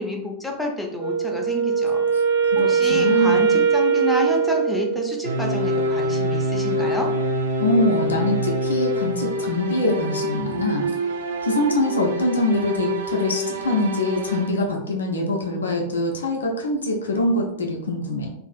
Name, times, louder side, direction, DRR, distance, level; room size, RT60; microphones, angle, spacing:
voice 1, 0.0-2.0 2.6-7.1, left 1 dB, ahead, 0 dB, 0.5 m, -28 dB
Wind instrument woodwind instrument, 1.0-5.3, right 6 dB, 85° right, 1.3 m, -21 dB
voice 2, 2.5-3.5 7.6-10.9 11.4-18.3, left 1 dB, 70° left, 1 dB, 0.4 m, -24 dB
sound 1, 5.2-14.5, equal, 60° right, 0.4 m, -25 dB
2.5 x 2.4 x 2.3 m, 0.75 s
figure-of-eight pair, 90°, 0 cm